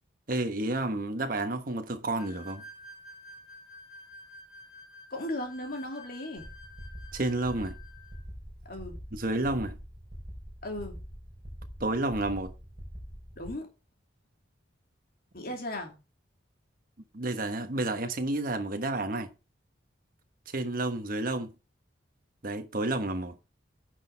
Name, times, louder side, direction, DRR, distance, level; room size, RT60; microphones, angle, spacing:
voice 1, 0.3-2.6 7.1-7.7 9.1-9.8 11.8-12.5 17.1-19.3 20.5-21.5 22.4-23.4, right 2 dB, 45° right, 1.3 m, -30 dB
sound 1, 2.2-8.2, left 2 dB, 5° right, 2.4 m, -50 dB
voice 2, 5.1-6.5 8.6-9.0 10.6-11.0 13.4-13.7 15.3-15.9, left 1 dB, 50° left, 2.7 m, -36 dB
sound 2, 6.4-13.5, equal, 25° right, 3.7 m, -44 dB
10.0 x 6.4 x 3.5 m
head